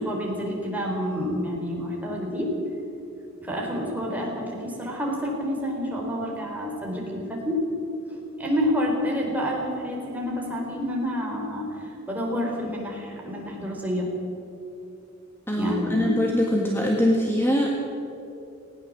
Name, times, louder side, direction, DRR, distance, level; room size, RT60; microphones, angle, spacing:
voice 1, 0.0-2.5 3.4-7.6 8.1-11.7 12.1-14.1 15.6-16.3, equal, 10° right, -2 dB, 4.3 m, -28 dB
voice 2, 15.5-17.7, equal, 10° left, 0 dB, 1.7 m, -23 dB
19.5 x 17.5 x 7.7 m, 2.9 s
head